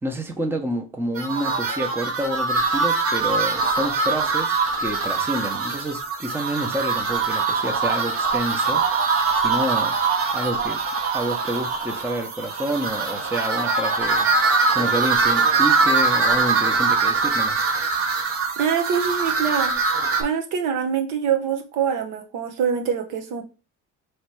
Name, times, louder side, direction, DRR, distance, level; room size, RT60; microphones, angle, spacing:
voice 1, 0.0-10.0 10.3-10.8 11.1-17.7, equal, 5° right, 0.8 m, -29 dB
sound 1, 1.2-20.2, right 4 dB, 45° right, 1.1 m, -22 dB
voice 2, 18.6-19.8 20.2-23.4, right 7 dB, 75° right, 1.1 m, -24 dB
3.2 x 3.2 x 4.6 m
supercardioid pair, 95°, 32 cm